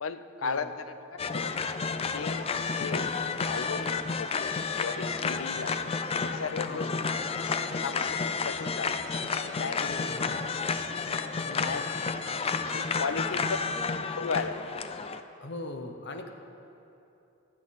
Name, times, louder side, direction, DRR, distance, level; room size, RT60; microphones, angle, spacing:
voice 1, 0.0-1.5 2.0-3.1 3.5-5.9 6.2-6.9 7.8-9.0 9.4-9.9 11.6-12.2 12.7-13.6 14.2-14.9, left 5 dB, 75° left, 11 dB, 0.6 m, -36 dB
sound 1, 1.2-15.2, left 5 dB, 30° left, 0.4 m, -31 dB
voice 2, 6.7-7.0 9.8-10.5 11.4-11.8 13.3-13.4 15.4-16.3, left 2 dB, 55° left, 5 dB, 0.9 m, -40 dB
16.0 x 11.5 x 4.2 m, 2.9 s
head